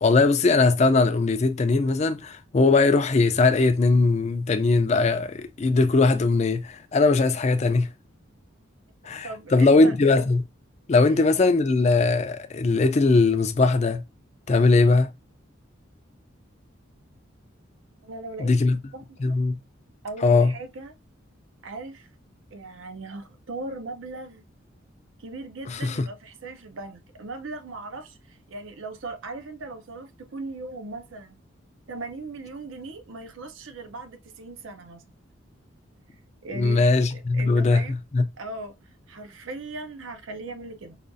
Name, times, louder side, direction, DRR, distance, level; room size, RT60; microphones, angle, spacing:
voice 1, 0.0-7.9 9.1-10.4 10.9-14.0 14.5-15.1 18.4-18.8 19.2-19.6 20.2-20.5 25.7-26.1 36.5-37.8 38.1-38.2, left 3 dB, 35° left, 0.3 m, -20 dB
voice 2, 9.0-10.0 11.1-11.2 18.0-18.5 18.9-19.3 20.0-20.9 21.6-22.1 22.5-24.4 25.2-31.4 31.9-35.0 36.4-36.8 37.1-38.0 38.4-41.0, right 3 dB, 75° right, 0.6 m, -38 dB
4.9 x 2.3 x 2.5 m
head